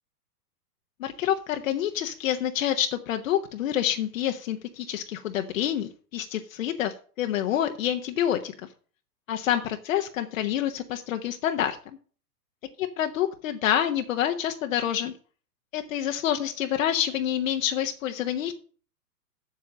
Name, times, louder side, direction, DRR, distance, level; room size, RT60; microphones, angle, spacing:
voice 1, 1.0-8.5 9.3-11.8 13.0-15.1 15.7-18.5, left 10 dB, 55° left, 5 dB, 1.0 m, -27 dB
7.6 x 7.0 x 6.2 m, 0.41 s
hypercardioid pair, 115°, 48 cm